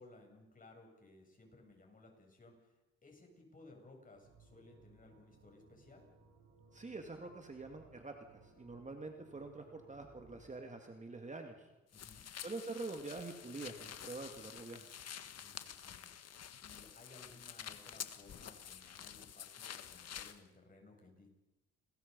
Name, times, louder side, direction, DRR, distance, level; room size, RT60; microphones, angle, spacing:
voice 1, 0.0-6.1 11.9-12.3 15.4-21.3, left 2 dB, 25° left, 1 dB, 8.0 m, -60 dB
sound 1, 4.1-10.5, right 4 dB, 70° right, 7.7 m, -64 dB
voice 2, 6.7-8.1 8.4-11.7 12.4-14.9, right 3 dB, 25° right, 4 dB, 2.4 m, -46 dB
sound 2, 11.9-20.4, left 9 dB, 55° left, 1.6 m, -49 dB
29.5 x 21.5 x 5.5 m, 1.0 s
cardioid pair, 90°, 30 cm